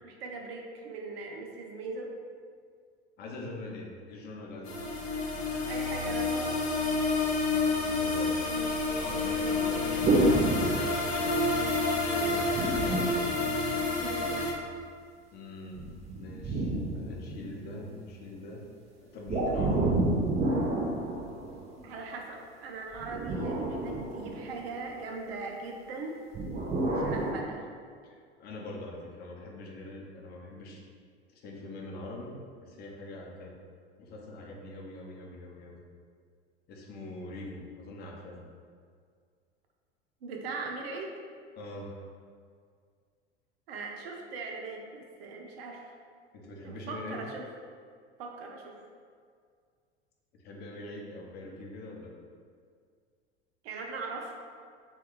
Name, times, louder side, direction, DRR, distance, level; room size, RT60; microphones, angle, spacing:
voice 1, 0.0-2.1 5.6-6.5 14.0-14.5 21.8-26.2 27.0-27.7 40.2-41.1 43.7-45.9 46.6-47.4 48.2-48.8 53.6-54.4, right 3 dB, 60° right, 1 dB, 0.5 m, -40 dB
voice 2, 3.2-5.0 7.5-8.4 8.7-10.3 10.6-11.1 12.0-12.6 12.8-13.0 15.3-15.9 16.2-18.6 19.0-19.9 28.0-30.8 31.3-33.5 34.0-35.8 36.7-38.4 41.6-42.1 46.3-47.2 50.3-52.1, left 2 dB, 30° left, -1 dB, 0.6 m, -43 dB
sound 1, 4.7-14.5, left 3 dB, 70° left, 0.6 m, -29 dB
sound 2, 10.0-11.5 12.5-14.1 15.7-17.8 19.3-21.8 22.9-24.8 26.3-27.3, right 2 dB, 20° right, 0.6 m, -29 dB
2.8 x 2.2 x 3.6 m, 2.1 s
figure-of-eight pair, 80°, 34 cm